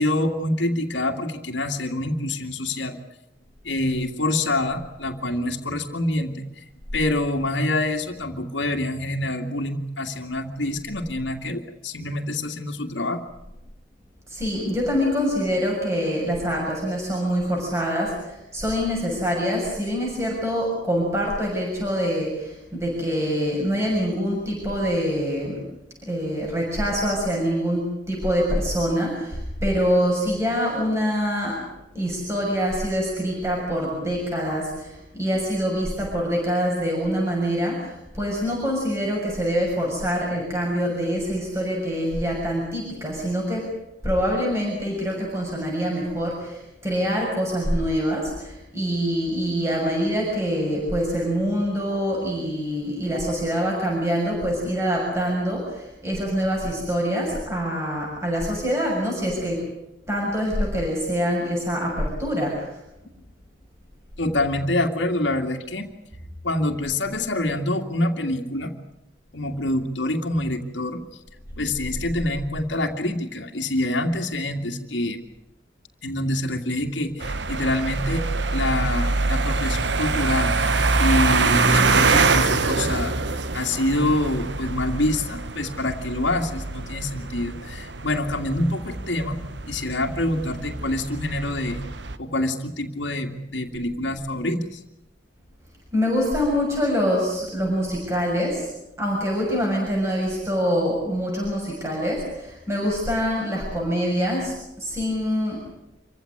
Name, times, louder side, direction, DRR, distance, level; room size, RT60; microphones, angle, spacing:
voice 1, 0.0-3.0 3.6-6.4 6.9-13.3 64.2-65.9 66.4-68.7 69.3-71.0 71.6-75.2 76.0-78.3 78.5-83.1 83.5-89.4 89.7-91.8 92.2-94.8, left 1 dB, 85° left, 2 dB, 2.3 m, -26 dB
voice 2, 14.3-25.6 26.0-31.6 31.9-43.6 44.0-59.6 60.1-62.7 95.9-98.7 99.0-105.6, equal, 15° right, -3 dB, 6.9 m, -25 dB
sound 1, 77.2-92.2, right 3 dB, 75° right, 1.3 m, -24 dB
27.0 x 15.5 x 9.8 m, 0.89 s
head